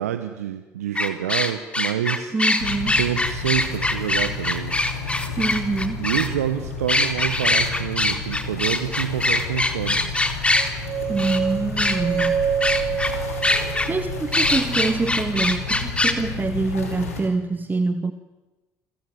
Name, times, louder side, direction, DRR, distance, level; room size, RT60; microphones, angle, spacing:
voice 1, 0.0-2.3 3.0-4.8 6.0-10.2, right 11 dB, 80° right, 10 dB, 1.3 m, -27 dB
sound 1, 1.0-6.3 6.9-10.7 11.2-11.4 11.8-12.3 12.6-13.1 13.4-13.9 14.3-16.1, left 2 dB, 15° left, 3.7 m, -22 dB
voice 2, 2.3-3.0 5.4-6.1 11.1-12.4 13.9-18.1, right 3 dB, 25° right, 8 dB, 2.0 m, -25 dB
sound 2, 2.6-17.2, left 4 dB, 85° left, 5.6 m, -32 dB
sound 3, 10.6-14.7, right 8 dB, 50° right, 2.9 m, -27 dB
29.5 x 25.0 x 8.0 m, 1.1 s
hypercardioid pair, 55°, 8 cm